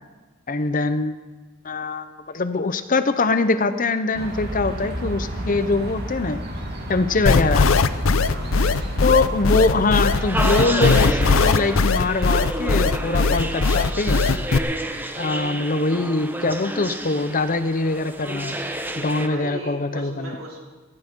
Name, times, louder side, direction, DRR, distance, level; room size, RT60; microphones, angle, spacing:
voice 1, 0.5-1.1 1.6-6.4 6.9-7.7 9.0-14.2 15.2-18.6 19.0-20.4, left 3 dB, 40° left, 10 dB, 0.8 m, -23 dB
sound 1, 4.1-10.2, right 1 dB, 50° right, 2.5 m, -31 dB
sound 2, 7.3-14.6, left 4 dB, 80° left, 0.6 m, -19 dB
voice 2, 8.3-8.8 19.2-20.6, right 1 dB, 75° right, -3 dB, 4.6 m, -37 dB
sound 3, 10.1-19.3, right 1 dB, 10° right, 0.9 m, -30 dB
18.5 x 14.0 x 4.6 m, 1.3 s
head